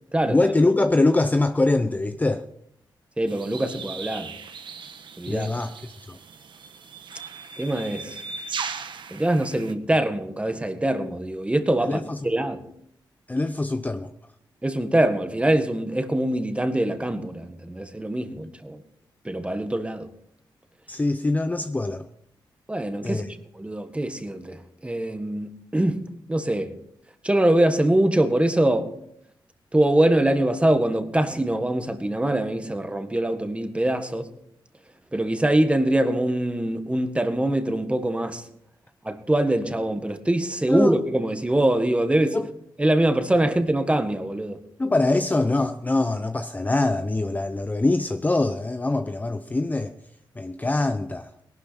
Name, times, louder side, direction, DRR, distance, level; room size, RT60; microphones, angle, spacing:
voice 1, 0.3-2.5 5.3-5.7 6.1-6.2 11.8-12.3 13.3-14.1 20.9-22.1 23.0-23.3 40.7-41.0 42.3-42.5 44.8-49.9 50.4-51.3, left 2 dB, 20° left, 0.7 m, -23 dB
voice 2, 3.2-4.3 5.2-5.5 7.6-8.2 9.1-12.6 14.6-18.8 19.2-20.1 22.7-26.0 26.3-26.7 27.2-28.9 29.7-34.3 35.1-38.4 39.0-42.4 42.8-44.6, right 1 dB, 15° right, 1.6 m, -23 dB
sound 1, 3.3-9.7, right 5 dB, 70° right, 1.2 m, -38 dB
18.5 x 12.0 x 4.3 m
cardioid pair, 85°, 8 cm